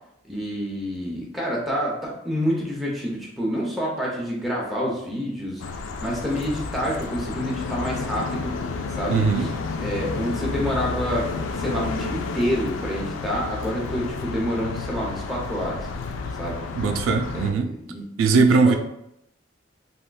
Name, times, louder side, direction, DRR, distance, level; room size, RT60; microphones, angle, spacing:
voice 1, 0.3-5.6 6.0-8.6 8.9-9.5 9.8-15.8 16.4-16.6 17.3-18.0 18.3-18.8, equal, ahead, -4 dB, 0.6 m, -28 dB
sound 1, 5.6-17.5, left 4 dB, 80° left, 0.3 m, -31 dB
voice 2, 9.1-9.5 16.8-17.7 18.2-18.7, right 4 dB, 90° right, 7 dB, 0.3 m, -19 dB
3.5 x 2.4 x 2.2 m, 0.78 s
head